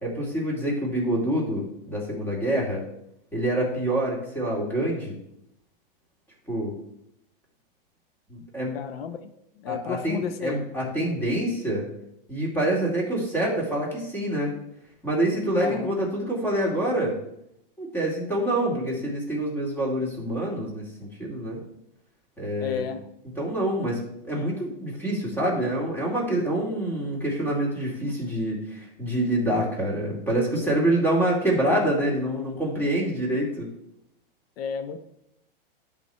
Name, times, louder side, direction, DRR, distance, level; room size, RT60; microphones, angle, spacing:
voice 1, 0.0-2.8 3.3-5.2 6.5-6.7 8.3-8.8 9.7-11.9 12.3-14.5 15.0-17.2 17.8-21.6 22.4-22.9 23.4-33.7, right 1 dB, 5° left, -4 dB, 2.4 m, -26 dB
voice 2, 8.7-9.2 9.6-10.6 15.6-15.9 22.6-23.1 34.6-35.0, left 7 dB, 90° left, 9 dB, 0.8 m, -32 dB
12.0 x 4.2 x 4.3 m, 0.81 s
supercardioid pair, 145°, 29 cm